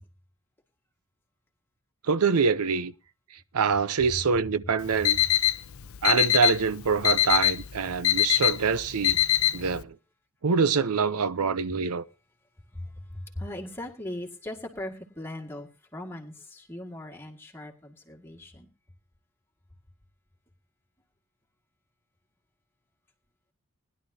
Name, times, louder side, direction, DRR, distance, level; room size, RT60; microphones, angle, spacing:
voice 1, 2.0-2.9 3.5-5.2 6.0-9.2 9.5-10.0 10.4-12.0, right 5 dB, 90° right, 0.6 m, -25 dB
Alarm, 4.8-9.8, left 13 dB, 70° left, 0.6 m, -24 dB
voice 2, 12.7-18.7, left 1 dB, 10° left, 1.9 m, -39 dB
20.0 x 11.5 x 2.7 m
head